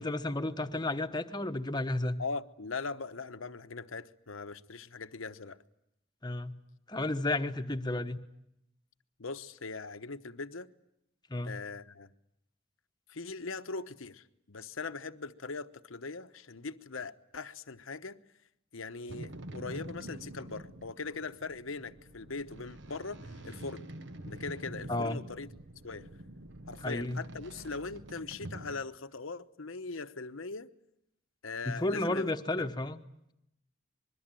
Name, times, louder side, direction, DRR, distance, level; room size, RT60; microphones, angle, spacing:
voice 1, 0.0-2.2 6.2-6.6 6.9-8.2 11.3-11.6 24.9-25.2 26.8-27.2 31.7-33.0, left 2 dB, 20° left, 1.2 m, -32 dB
voice 2, 2.2-5.6 9.2-10.7 11.4-12.1 13.1-18.2 18.7-23.9 24.3-25.5 25.8-26.1 26.7-30.7 31.4-32.3, left 4 dB, 75° left, 1.0 m, -40 dB
sound 1, 19.1-28.8, right 1 dB, 60° right, 1.1 m, -46 dB
25.5 x 22.0 x 9.1 m
head